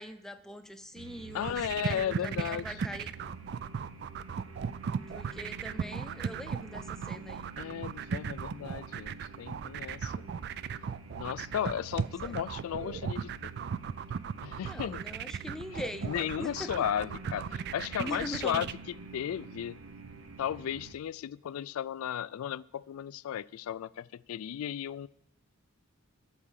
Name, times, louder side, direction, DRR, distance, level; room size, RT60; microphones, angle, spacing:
voice 1, 0.0-3.1 5.1-7.5 12.2-12.4 14.6-16.7 18.0-18.7, left 1 dB, ahead, 8 dB, 0.6 m, -42 dB
sound 1, 1.0-20.9, right 3 dB, 75° right, 0.9 m, -48 dB
voice 2, 1.3-2.8 7.6-10.2 11.2-13.5 14.4-15.0 15.7-18.7 19.1-19.8 20.4-25.1, left 9 dB, 80° left, 20 dB, 0.3 m, -35 dB
sound 2, 1.3-18.7, right 7 dB, 50° right, 0.3 m, -36 dB
13.5 x 4.9 x 7.3 m, 0.77 s
head